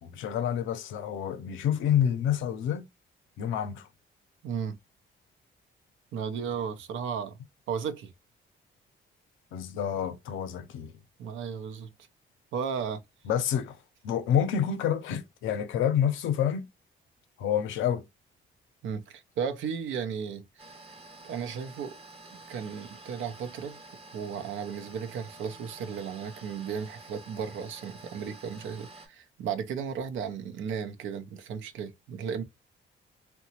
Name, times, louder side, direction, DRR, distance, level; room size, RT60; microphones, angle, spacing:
voice 1, 0.0-2.8 3.4-3.9 9.5-10.9 13.2-13.8 14.0-16.7 17.4-18.0, left 9 dB, 85° left, 0.6 m, -28 dB
voice 2, 4.4-4.8 6.1-7.4 7.7-8.1 11.2-11.9 12.5-13.0 18.8-20.6 21.2-22.0 22.3-23.8 24.1-32.4, right 7 dB, 80° right, 0.6 m, -35 dB
sound 1, 20.6-29.1, right 2 dB, 30° right, 0.7 m, -49 dB
2.9 x 2.2 x 2.7 m
cardioid pair, 90°, 20 cm